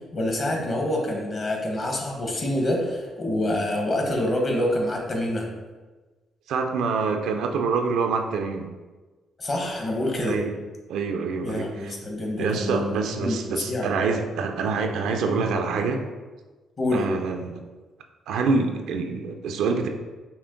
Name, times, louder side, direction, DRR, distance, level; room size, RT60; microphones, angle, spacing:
voice 1, 0.1-5.5 9.4-10.4 11.4-13.9 16.8-17.1, left 1 dB, 45° left, 1 dB, 1.1 m, -26 dB
voice 2, 6.5-8.7 10.2-10.5 10.9-11.9 12.4-16.0 16.9-17.6 18.3-19.9, right 4 dB, 80° right, 4 dB, 0.4 m, -26 dB
5.7 x 2.1 x 3.8 m, 1.3 s
cardioid pair, 90°, 0 cm